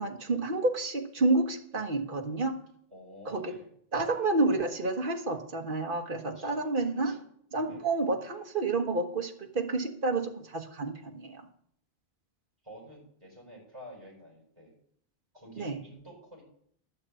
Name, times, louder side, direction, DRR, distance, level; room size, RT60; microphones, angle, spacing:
voice 1, 0.0-2.6 3.3-3.5 3.9-7.2 7.5-11.4 15.6-15.8, right 3 dB, 55° right, 3 dB, 1.6 m, -29 dB
voice 2, 2.9-3.7 6.3-6.7 7.1-7.2 7.7-7.8 12.6-14.7 15.3-16.4, equal, 30° right, -3 dB, 6.2 m, -49 dB
11.5 x 6.6 x 8.4 m, 0.65 s
omnidirectional pair, 1.1 m